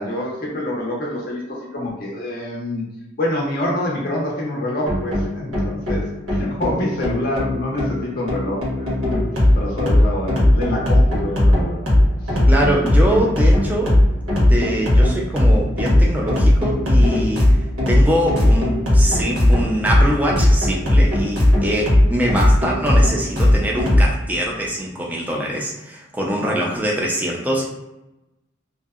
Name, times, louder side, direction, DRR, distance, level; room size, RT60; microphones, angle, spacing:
voice 1, 0.0-2.8 3.2-11.9 12.2-12.4 26.4-26.9, left 1 dB, 45° left, -3 dB, 0.5 m, -26 dB
sound 1, 4.9-24.1, left 1 dB, 80° right, 1.1 m, -17 dB
voice 2, 12.5-14.0 14.5-17.5 17.9-27.7, equal, 10° right, -2 dB, 0.4 m, -23 dB
2.6 x 2.1 x 2.3 m, 0.95 s
head